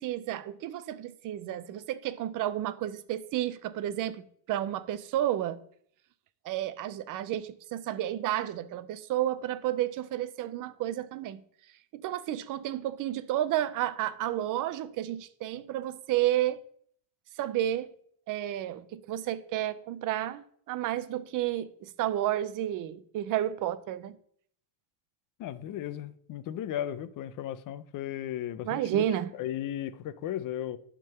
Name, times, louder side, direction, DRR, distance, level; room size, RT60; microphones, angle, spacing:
voice 1, 0.0-5.6 6.4-11.4 11.9-16.6 17.4-17.9 18.3-24.2 28.7-29.3, right 12 dB, 45° right, 0.5 m, -31 dB
voice 2, 25.4-29.0 29.4-30.8, left 11 dB, 40° left, 0.5 m, -35 dB
10.5 x 3.8 x 6.7 m
cardioid pair, 170°, 49 cm